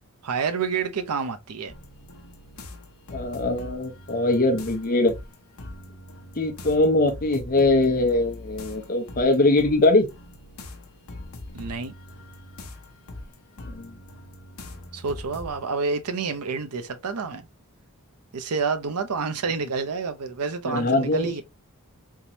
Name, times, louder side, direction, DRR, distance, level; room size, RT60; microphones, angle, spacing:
voice 1, 0.2-1.7 11.5-11.9 14.9-17.5 18.3-21.4, right 5 dB, 90° right, 0.7 m, -28 dB
sound 1, 1.7-15.7, left 1 dB, 65° left, 0.9 m, -42 dB
voice 2, 3.1-5.1 6.4-10.1 13.6-13.9 20.6-21.4, left 2 dB, 40° left, 0.8 m, -22 dB
3.6 x 3.0 x 2.7 m
head